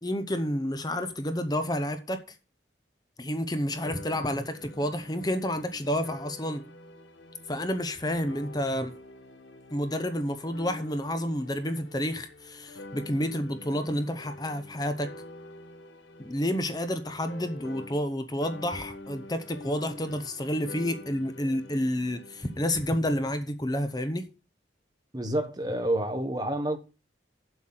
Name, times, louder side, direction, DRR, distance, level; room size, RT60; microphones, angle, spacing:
voice 1, 0.0-2.2 3.2-6.6 7.5-8.9 9.7-15.1 16.2-24.3, left 1 dB, 20° left, 0.8 m, -30 dB
sound 1, 3.7-18.2 18.4-22.9, left 1 dB, 80° left, 1.6 m, -47 dB
voice 2, 25.1-26.8, right 1 dB, 20° right, 1.3 m, -28 dB
7.6 x 6.0 x 7.6 m
head